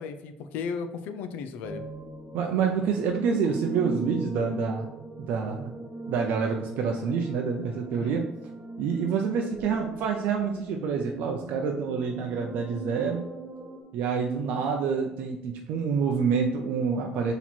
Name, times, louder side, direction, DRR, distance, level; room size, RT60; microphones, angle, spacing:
voice 1, 0.0-1.8 7.9-8.2, left 5 dB, 80° left, 9 dB, 0.4 m, -35 dB
sound 1, 1.6-13.8, right 2 dB, 45° right, 1.2 m, -40 dB
voice 2, 2.3-4.9 5.2-5.7 6.1-8.2 8.8-13.2 13.9-17.3, right 6 dB, 75° right, 2 dB, 0.5 m, -27 dB
4.3 x 2.9 x 4.2 m, 0.87 s
cardioid pair, 140°, 3 cm